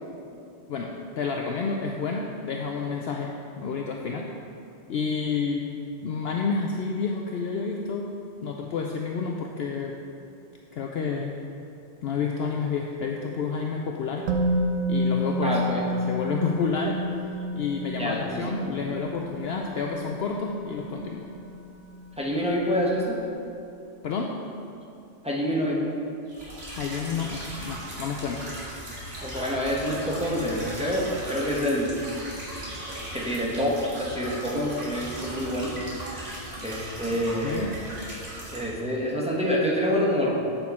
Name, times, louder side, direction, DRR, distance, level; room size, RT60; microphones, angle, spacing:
voice 1, 0.7-4.3 4.9-5.7 6.0-8.1 8.4-9.9 10.7-11.4 12.0-14.3 14.9-15.6 16.1-17.0 17.5-21.3 24.0-24.4 26.6-28.4 37.4-37.7, left 5 dB, 65° left, 1 dB, 0.7 m, -30 dB
Musical instrument, 14.3-22.2 22.5-22.6, equal, 75° right, 1.0 m, -30 dB
voice 2, 15.4-15.8 17.9-18.7 22.2-23.2 25.2-25.9 29.2-32.0 32.9-35.8 36.5-37.8 38.5-40.4, equal, 5° right, -4 dB, 1.0 m, -27 dB
sound 1, 26.3-38.7, right 1 dB, 55° right, 2.0 m, -38 dB
8.1 x 6.4 x 4.2 m, 2.7 s
omnidirectional pair, 1.3 m